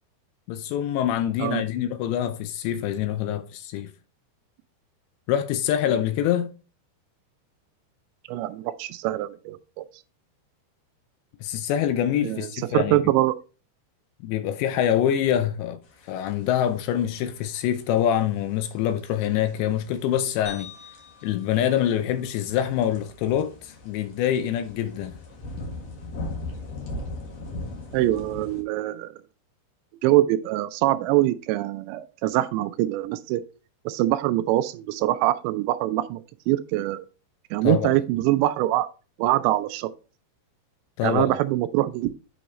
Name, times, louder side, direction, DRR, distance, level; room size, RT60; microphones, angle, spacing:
voice 1, 0.5-3.9 5.3-6.5 11.4-13.0 14.2-15.8 16.1-20.7 21.2-25.2 37.6-38.0 41.0-41.4, left 10 dB, 80° left, 2.7 m, -25 dB
voice 2, 8.3-9.8 12.2-13.3 27.9-29.1 30.0-33.4 33.9-37.1 37.5-38.9 39.2-39.9 41.0-42.1, right 15 dB, 85° right, 2.7 m, -24 dB
sound 1, 15.9-28.6, left 2 dB, 60° left, 1.8 m, -39 dB
sound 2, 20.4-22.8, left 6 dB, 15° left, 1.3 m, -46 dB
7.9 x 6.3 x 3.1 m
omnidirectional pair, 5.2 m